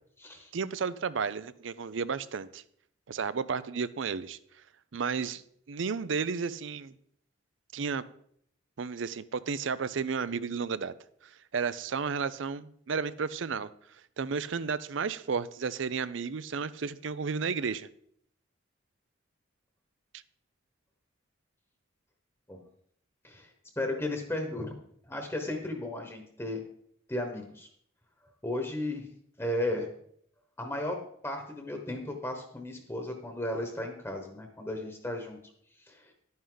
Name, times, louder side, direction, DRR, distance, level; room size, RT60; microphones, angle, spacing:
voice 1, 0.5-2.6 3.1-4.4 4.9-5.4 5.7-6.9 7.7-8.0 8.8-10.9 11.5-13.7 14.2-17.9, right 5 dB, 70° right, 16 dB, 0.5 m, -32 dB
voice 2, 23.8-24.8 25.0-26.6 27.1-27.7 28.4-29.1 29.4-29.9 30.6-35.4 35.9-36.1, left 1 dB, 15° left, 4 dB, 1.2 m, -35 dB
11.5 x 9.5 x 3.9 m, 0.66 s
head